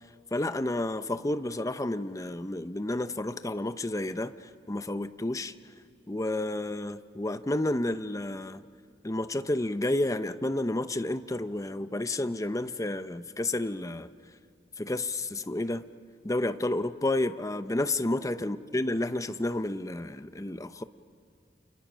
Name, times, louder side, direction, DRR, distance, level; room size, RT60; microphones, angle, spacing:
voice 1, 0.3-4.3 4.7-5.5 6.1-8.6 9.0-14.1 14.8-15.8 16.2-20.8, left 1 dB, 20° left, 0.7 m, -30 dB
29.5 x 28.5 x 6.3 m
head